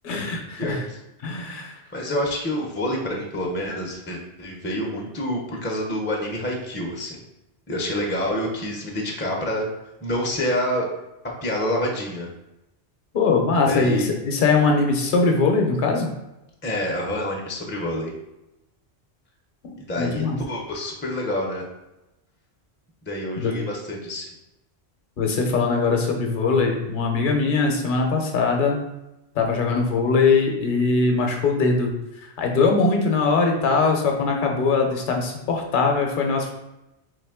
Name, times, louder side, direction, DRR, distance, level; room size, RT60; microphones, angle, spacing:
voice 1, 0.0-0.8 1.2-1.7 13.1-16.1 20.0-20.4 23.4-23.5 25.2-28.8 29.3-31.9 32.2-36.5, left 4 dB, 55° left, 2 dB, 0.8 m, -21 dB
voice 2, 1.9-7.2 7.7-9.7 10.0-10.9 11.4-12.3 13.7-14.1 16.6-18.1 19.8-21.6 23.0-24.3, left 1 dB, 15° left, -2 dB, 0.4 m, -27 dB
3.7 x 3.0 x 3.5 m, 0.94 s
omnidirectional pair, 1.1 m